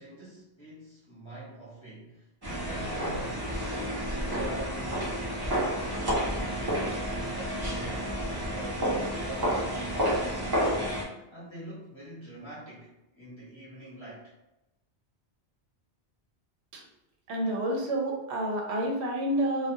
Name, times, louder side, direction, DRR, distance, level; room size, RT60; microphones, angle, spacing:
voice 1, 0.0-7.0 7.3-8.1 8.5-10.6 11.3-14.3, right 1 dB, 30° left, -8 dB, 0.8 m, -45 dB
sound 1, 2.4-11.0, equal, 30° right, 0.5 m, -30 dB
voice 2, 17.3-19.7, right 1 dB, 80° right, 0 dB, 0.8 m, -29 dB
2.3 x 2.2 x 2.6 m, 0.95 s
omnidirectional pair, 1.1 m